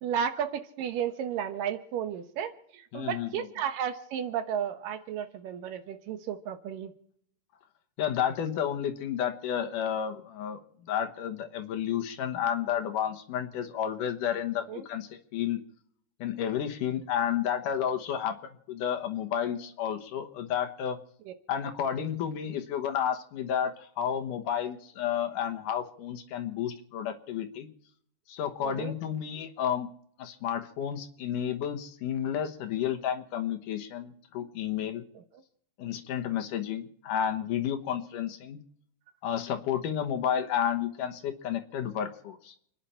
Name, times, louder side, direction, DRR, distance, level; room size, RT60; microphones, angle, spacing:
voice 1, 0.0-6.9 14.7-14.8 21.3-21.4 28.6-28.9, right 8 dB, 75° right, 9 dB, 2.8 m, -33 dB
voice 2, 2.9-3.5 8.0-10.6 10.9-15.6 16.2-18.4 18.7-21.0 21.5-27.7 28.3-29.9 30.2-35.0 35.8-38.6 39.2-42.5, left 9 dB, 70° left, 6 dB, 2.7 m, -31 dB
28.5 x 10.0 x 4.4 m, 0.68 s
omnidirectional pair, 4.0 m